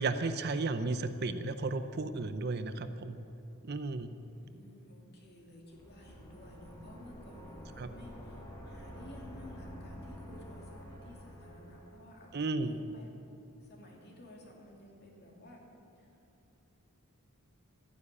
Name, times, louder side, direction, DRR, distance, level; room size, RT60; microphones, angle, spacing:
voice 1, 0.0-3.2 3.6-4.1 7.8-7.9 12.3-12.7, right 3 dB, 45° right, 10 dB, 0.6 m, -34 dB
voice 2, 4.3-13.1 13.6-15.7 16.0-16.1, left 1 dB, 45° left, -1 dB, 2.7 m, -54 dB
sound 1, 5.7-12.2, equal, 15° left, 2.2 m, -48 dB
13.5 x 9.8 x 8.3 m, 2.8 s
head